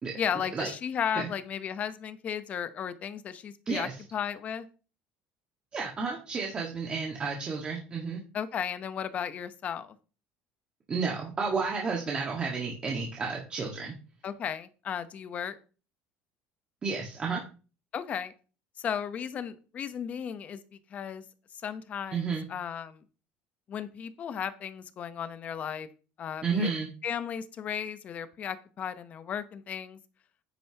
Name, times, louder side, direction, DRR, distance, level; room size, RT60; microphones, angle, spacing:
voice 1, 0.2-4.7 8.3-9.9 14.2-15.6 17.9-18.3 18.8-21.2 21.6-23.0 23.7-25.9 26.2-26.7 27.0-30.0, left 8 dB, 35° left, 12 dB, 0.9 m, -35 dB
voice 2, 5.7-8.2 10.9-13.9 16.8-17.4 22.1-22.4 26.4-26.9, right 4 dB, 25° right, -1 dB, 1.7 m, -31 dB
10.0 x 9.1 x 2.9 m, 0.36 s
cardioid pair, 145°, 4 cm